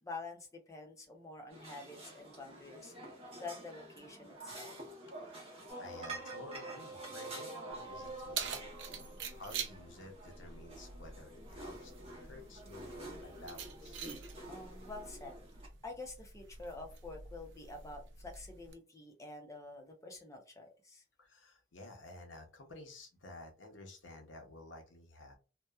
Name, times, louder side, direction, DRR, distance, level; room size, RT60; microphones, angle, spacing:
voice 1, 0.0-2.9 3.4-4.7 8.9-9.2 14.5-15.4 15.8-21.0, left 3 dB, 15° left, 2 dB, 0.6 m, -48 dB
sound 1, 1.5-15.7, right 2 dB, 30° right, 1.1 m, -50 dB
voice 2, 5.2-8.7 9.3-14.0 21.2-25.4, left 2 dB, 90° left, 4 dB, 0.7 m, -52 dB
sound 2, 5.7-9.9, right 2 dB, 5° right, 1.0 m, -48 dB
Keys jangling, 7.7-18.7, right 6 dB, 70° right, 0.5 m, -47 dB
2.8 x 2.2 x 2.2 m, 0.33 s
head